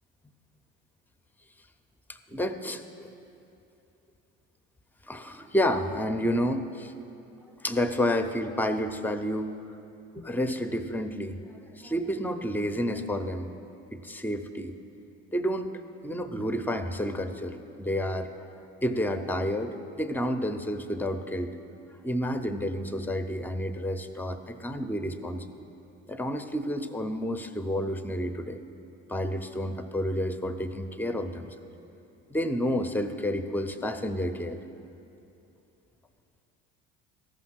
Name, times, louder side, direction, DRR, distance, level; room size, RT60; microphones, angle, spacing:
voice 1, 2.1-3.1 5.1-6.9 7.6-9.5 10.2-11.4 11.7-13.5 13.9-14.7 15.3-15.7 16.0-18.4 18.8-21.6 22.0-25.5 26.1-28.6 29.1-31.5 32.3-34.6, equal, 5° left, 8 dB, 0.6 m, -30 dB
13.5 x 5.7 x 6.1 m, 2.7 s
hypercardioid pair, 80°, 32 cm